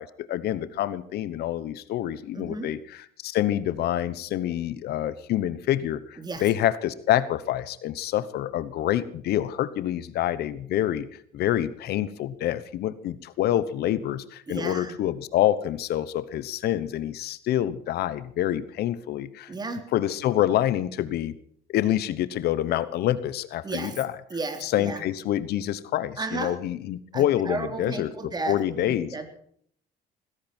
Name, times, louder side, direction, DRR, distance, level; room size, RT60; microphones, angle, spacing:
voice 1, 0.0-11.1 11.3-19.5 19.9-21.3 21.7-24.1 24.6-29.2, left 12 dB, 70° left, 16 dB, 1.1 m, -27 dB
voice 2, 2.3-2.7 6.2-6.5 14.5-14.9 19.5-19.8 23.6-24.0 24.3-25.0 26.2-26.6 27.1-29.3, right 3 dB, 25° right, 7 dB, 3.4 m, -33 dB
19.5 x 16.5 x 4.5 m, 0.62 s
cardioid pair, 110°, 17 cm